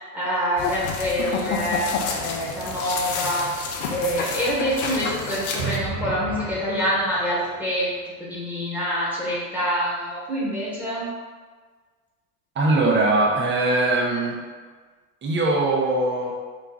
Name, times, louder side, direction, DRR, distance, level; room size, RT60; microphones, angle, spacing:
voice 1, 0.1-1.9 2.2-3.6 3.9-7.9 8.2-11.1, equal, 5° right, -7 dB, 1.2 m, -26 dB
sound 1, 0.6-5.8, left 4 dB, 75° left, 0.7 m, -29 dB
sound 2, 5.6-7.6, right 3 dB, 90° right, 0.8 m, -33 dB
voice 2, 12.6-14.4 15.2-16.3, right 2 dB, 25° right, -1 dB, 0.8 m, -21 dB
3.1 x 2.3 x 3.8 m, 1.5 s
hypercardioid pair, 90°, 43 cm